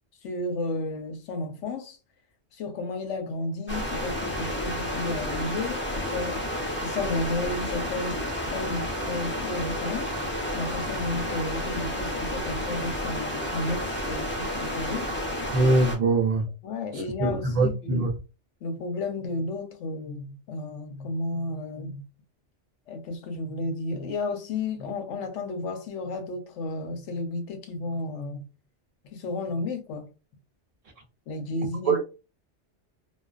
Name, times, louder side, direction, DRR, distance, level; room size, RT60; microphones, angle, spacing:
voice 1, 0.2-2.0 2.6-6.4 6.8-8.2 8.5-10.1 10.5-15.1 16.6-18.1 18.6-22.0 22.9-28.4 29.1-30.1 31.3-32.0, left 2 dB, 90° left, 1.0 m, -32 dB
sound 1, 3.7-16.0, left 1 dB, 15° left, 0.5 m, -31 dB
voice 2, 15.5-16.5 17.2-18.1 31.8-32.0, right 3 dB, 65° right, 0.3 m, -22 dB
2.4 x 2.1 x 2.3 m
omnidirectional pair, 1.2 m